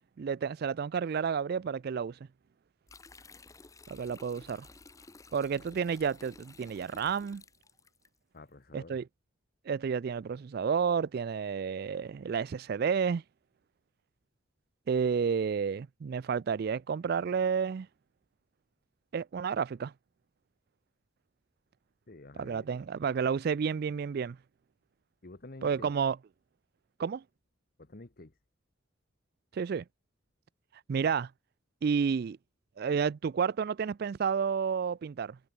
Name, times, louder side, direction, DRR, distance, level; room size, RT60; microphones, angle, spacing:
voice 1, 0.2-2.2 3.9-4.7 5.3-7.4 8.7-9.0 9.7-13.2 14.9-17.9 19.1-19.9 22.4-24.4 25.6-26.2 27.0-27.2 29.5-29.8 30.9-31.3 31.8-32.4 32.8-35.4, right 6 dB, 50° right, 0.3 m, -30 dB
sound 1, 2.9-8.1, left 3 dB, 15° left, 0.9 m, -54 dB
voice 2, 8.3-9.0 22.1-22.7 25.2-25.9 27.8-28.3, left 2 dB, 45° left, 1.2 m, -49 dB
head